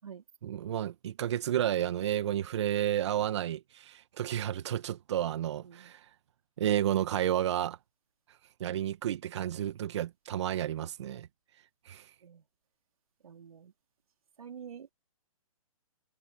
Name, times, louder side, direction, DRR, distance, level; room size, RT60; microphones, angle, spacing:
voice 1, 0.4-6.0 6.6-7.8 8.6-11.3 11.9-12.1, right 11 dB, 50° right, 2.0 m, -31 dB
voice 2, 5.6-5.9 12.2-12.5 13.2-13.7 14.4-14.9, right 7 dB, 75° right, 4.1 m, -47 dB
hypercardioid pair, 150°, 18 cm